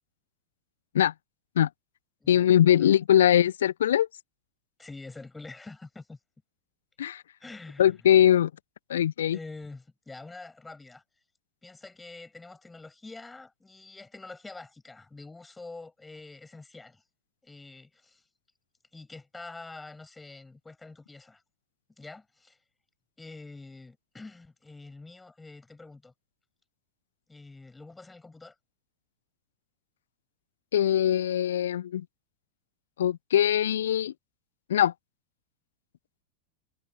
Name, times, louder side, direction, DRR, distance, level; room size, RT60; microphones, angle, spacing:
voice 1, 2.3-4.1 7.0-7.2 7.8-8.5 8.9-9.4 30.7-32.0 33.0-34.1 34.7-34.9, left 10 dB, 60° left, 0.9 m, -22 dB
voice 2, 4.8-6.2 7.4-7.9 9.3-11.0 11.6-17.0 17.4-18.2 18.9-21.4 22.0-22.6 23.2-26.1 27.3-28.5, left 3 dB, 10° left, 7.3 m, -46 dB
figure-of-eight pair, 90°, 0 cm